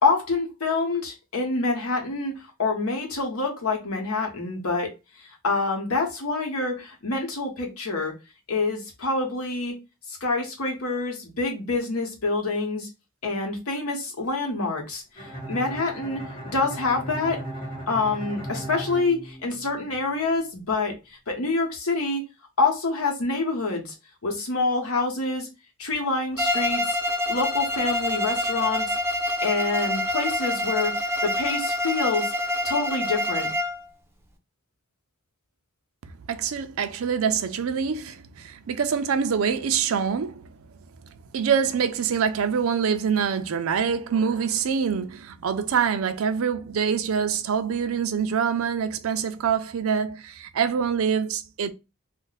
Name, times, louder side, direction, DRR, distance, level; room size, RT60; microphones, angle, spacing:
voice 1, 0.0-2.3 2.6-4.9 5.2-8.1 8.5-9.7 10.1-12.9 13.2-16.2 16.5-17.4 17.9-22.2 22.6-23.9 24.2-25.5 25.8-27.0 27.3-29.0 29.4-32.3 32.6-33.5, left 3 dB, 85° left, 1.1 m, -26 dB
Bowed string instrument, 15.1-20.0, right 1 dB, 25° left, 1.1 m, -36 dB
Bowed string instrument 2, 26.4-33.8, left 1 dB, 10° right, 0.5 m, -26 dB
voice 2, 36.3-40.4 41.3-51.7, right 7 dB, 70° right, 0.4 m, -25 dB
2.5 x 2.1 x 3.9 m
head